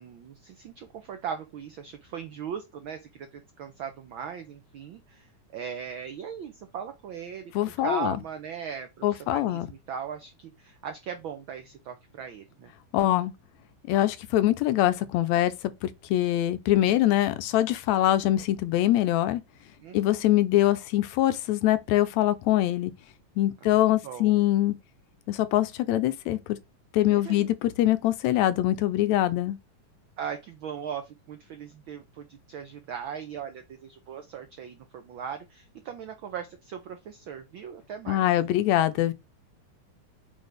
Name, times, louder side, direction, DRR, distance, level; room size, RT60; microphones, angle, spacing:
voice 1, 0.0-7.5 7.8-12.7 19.8-20.3 23.6-23.8 24.0-24.4 27.1-27.5 30.2-38.3, right 7 dB, 85° right, 1.1 m, -39 dB
voice 2, 7.5-8.2 9.0-9.7 12.9-13.3 13.9-15.5 15.8-19.4 19.9-22.9 23.4-24.7 25.3-26.4 26.9-29.6 38.1-39.1, left 14 dB, 85° left, 1.9 m, -23 dB
8.0 x 3.7 x 3.3 m
omnidirectional pair, 3.3 m